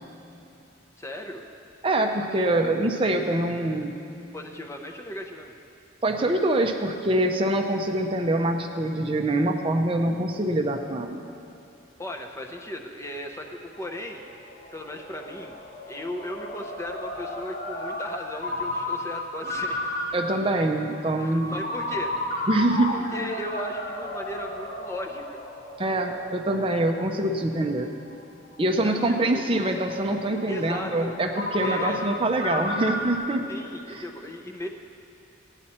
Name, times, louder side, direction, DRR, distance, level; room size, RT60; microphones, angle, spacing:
voice 1, 1.0-1.4 4.3-5.5 12.0-14.3 14.7-15.6 15.9-19.8 21.2-22.2 22.9-25.4 28.8-29.4 30.5-31.2 31.6-32.1 33.5-34.7, equal, 15° left, 3 dB, 0.6 m, -36 dB
voice 2, 1.8-3.9 6.0-11.2 20.1-21.6 22.5-22.9 25.8-27.9 28.6-33.5 33.9-34.0, right 1 dB, 25° right, 4 dB, 0.5 m, -24 dB
Ringtone, 13.4-33.1, left 2 dB, 40° left, 1.3 m, -34 dB
16.0 x 9.8 x 4.2 m, 2.7 s
head